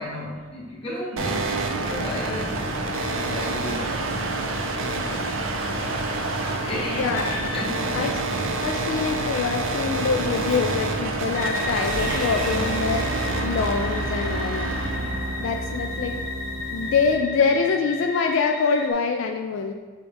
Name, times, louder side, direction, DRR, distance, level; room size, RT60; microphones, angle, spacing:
voice 1, 0.0-4.4 4.9-5.3 6.6-8.1 9.3-9.4 10.5-10.6 12.1-12.5, left 1 dB, 30° left, -6 dB, 1.2 m, -34 dB
sound 1, 1.2-17.1, right 2 dB, 85° right, 0.5 m, -28 dB
voice 2, 7.0-7.4 7.9-8.2 8.6-13.1 13.4-14.7 15.4-16.2 16.7-19.7, left 5 dB, 70° left, 4 dB, 0.3 m, -25 dB
sound 2, 7.1-7.7 11.3-18.9, left 2 dB, 45° left, 0.8 m, -34 dB
sound 3, 11.8-18.0, right 1 dB, 40° right, 0.7 m, -32 dB
6.7 x 2.3 x 3.4 m, 1.5 s
head